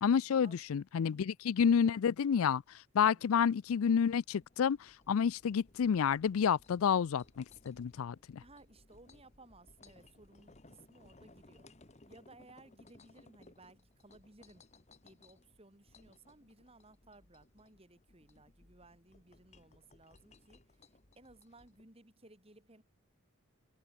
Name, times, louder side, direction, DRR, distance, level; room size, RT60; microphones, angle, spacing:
voice 1, 0.0-2.6 2.9-4.8 5.1-8.4, left 7 dB, 80° left, 0.4 m, -29 dB
sound 1, 2.6-21.9, left 2 dB, 30° left, 1.5 m, -63 dB
voice 2, 3.0-3.3 8.4-11.7 12.1-14.6 15.0-20.9 21.1-22.8, right 2 dB, 25° right, 3.2 m, -60 dB
head